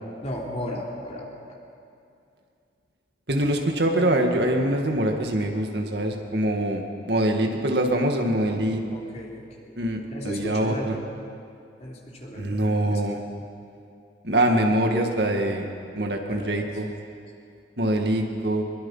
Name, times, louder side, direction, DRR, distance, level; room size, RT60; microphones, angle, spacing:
voice 1, 0.2-1.5 8.9-11.0 11.8-13.0 13.4-13.5 16.3-16.5, equal, 35° left, -2 dB, 3.3 m, -35 dB
voice 2, 3.3-8.8 9.8-10.9 12.3-13.2 14.2-15.7 15.9-16.9 17.8-18.6, right 1 dB, 65° right, 3 dB, 2.1 m, -24 dB
23.5 x 22.5 x 5.7 m, 2.5 s
head